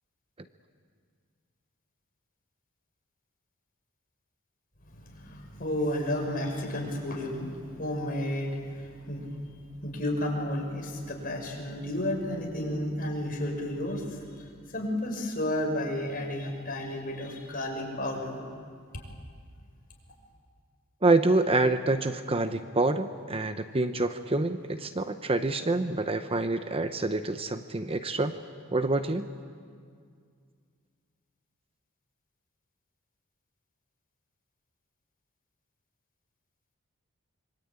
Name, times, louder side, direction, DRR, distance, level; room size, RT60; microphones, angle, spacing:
voice 1, 5.0-9.2 9.8-14.2 14.7-18.4, left 1 dB, 45° left, 1 dB, 6.3 m, -32 dB
voice 2, 21.0-28.4 28.7-29.2, right 2 dB, 25° right, 9 dB, 0.8 m, -27 dB
26.0 x 24.5 x 8.9 m, 2.1 s
head